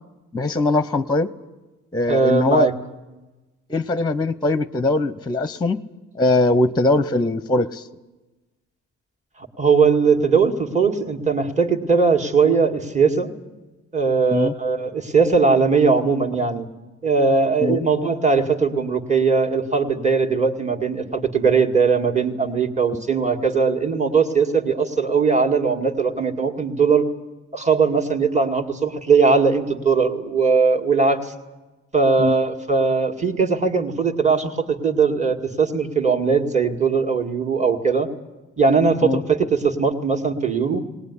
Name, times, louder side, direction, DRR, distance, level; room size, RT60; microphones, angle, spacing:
voice 1, 0.3-1.3 1.9-2.7 3.7-5.8 6.1-7.8 14.3-14.5 17.6-17.8 22.9-23.0 32.2-32.4 39.0-39.2, left 2 dB, 15° left, 12 dB, 0.8 m, -21 dB
voice 2, 2.1-2.7 9.6-13.3 13.9-16.7 17.0-27.1 27.5-31.3 31.9-38.1 38.6-40.8, right 5 dB, 25° right, 4 dB, 2.1 m, -19 dB
19.0 x 19.0 x 9.8 m, 1.1 s
cardioid pair, 90°, 30 cm